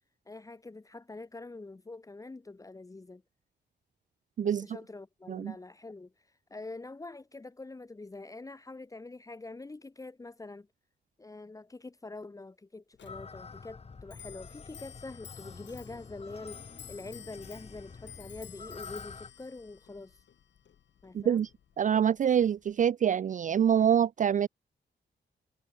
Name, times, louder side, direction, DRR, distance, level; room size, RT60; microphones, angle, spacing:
voice 1, 0.3-3.2 4.4-6.1 6.5-10.7 11.2-16.6 16.9-20.2 21.0-21.4, left 3 dB, 20° left, 1.3 m, -45 dB
Clock, 13.0-22.8, left 9 dB, 75° left, 2.1 m, -53 dB
Barking Geese echo, 13.1-19.3, left 4 dB, 35° left, 6.6 m, -48 dB
voice 2, 21.1-21.5 21.8-24.5, right 8 dB, 45° right, 0.4 m, -25 dB
wide cardioid pair, 170°, 19 cm